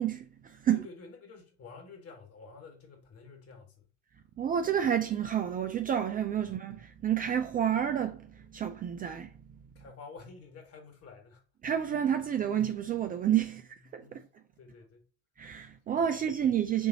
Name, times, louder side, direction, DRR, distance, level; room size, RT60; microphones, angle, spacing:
voice 1, 0.0-0.8 4.4-9.3 11.6-14.2 15.4-16.9, right 9 dB, 25° right, 0.4 m, -30 dB
voice 2, 0.7-3.8 9.8-11.4 13.4-14.3 14.6-15.1 16.1-16.2, left 4 dB, 40° left, 1.7 m, -50 dB
7.0 x 2.6 x 2.8 m
figure-of-eight pair, 70°, 36 cm